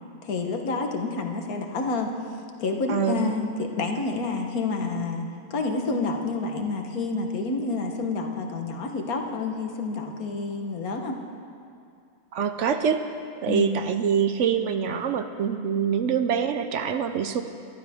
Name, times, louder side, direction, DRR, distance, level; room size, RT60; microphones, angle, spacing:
voice 1, 0.2-2.1 2.6-11.1 13.5-13.8, left 3 dB, 90° left, 3 dB, 1.7 m, -29 dB
voice 2, 2.9-3.3 12.3-13.0 13.4-17.4, right 7 dB, 65° right, 9 dB, 0.9 m, -25 dB
22.5 x 12.0 x 3.6 m, 2.4 s
omnidirectional pair, 1.5 m